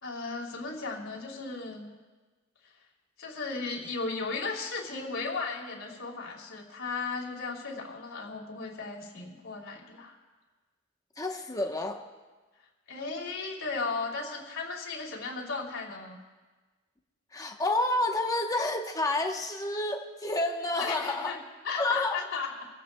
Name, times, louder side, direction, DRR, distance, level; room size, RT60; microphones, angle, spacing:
voice 1, 0.0-2.0 3.2-10.2 12.9-16.2 20.8-21.4 21.6-22.7, left 4 dB, 75° left, -2 dB, 3.0 m, -35 dB
voice 2, 11.2-12.0 17.3-21.3 21.8-22.2, left 2 dB, 15° left, 3 dB, 1.0 m, -29 dB
25.0 x 16.0 x 2.2 m, 1.3 s
head